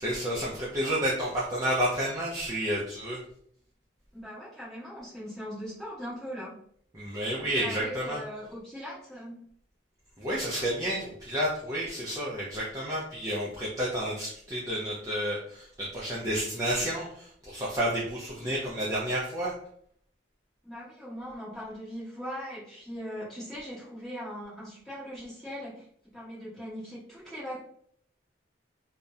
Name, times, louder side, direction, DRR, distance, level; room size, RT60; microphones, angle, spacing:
voice 1, 0.0-3.2 6.9-8.2 10.2-19.5, equal, 15° right, -6 dB, 0.3 m, -30 dB
voice 2, 4.1-6.6 7.4-9.5 18.4-18.5 20.6-27.6, equal, ahead, -11 dB, 1.1 m, -40 dB
2.6 x 2.0 x 2.3 m, 0.64 s
head